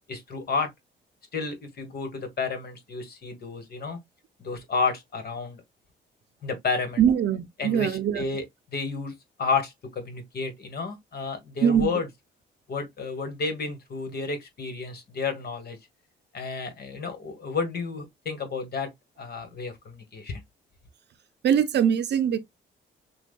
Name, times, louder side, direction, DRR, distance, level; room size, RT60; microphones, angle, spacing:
voice 1, 0.1-0.7 1.3-4.0 4.4-5.6 6.4-7.0 7.6-8.4 8.7-9.1 9.4-12.1 12.7-15.8 16.3-18.9 19.2-20.4, left 4 dB, 55° left, 1.6 m, -31 dB
voice 2, 7.0-8.3 11.6-12.0 21.4-22.4, right 8 dB, 60° right, 0.6 m, -22 dB
5.9 x 2.4 x 2.4 m
cardioid pair, 90°, 20 cm